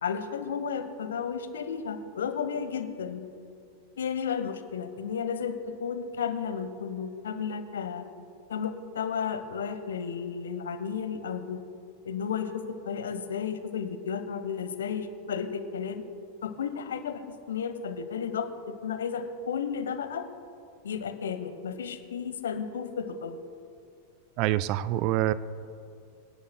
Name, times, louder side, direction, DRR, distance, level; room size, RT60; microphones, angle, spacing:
voice 1, 0.0-3.2 4.0-8.1 8.5-11.6 12.0-16.0 16.4-17.2 17.5-20.2 20.8-23.3, left 7 dB, 65° left, 9 dB, 0.9 m, -33 dB
voice 2, 24.4-25.3, right 14 dB, 40° right, 16 dB, 0.4 m, -25 dB
26.5 x 10.5 x 2.2 m, 2.4 s
figure-of-eight pair, 90°, 0 cm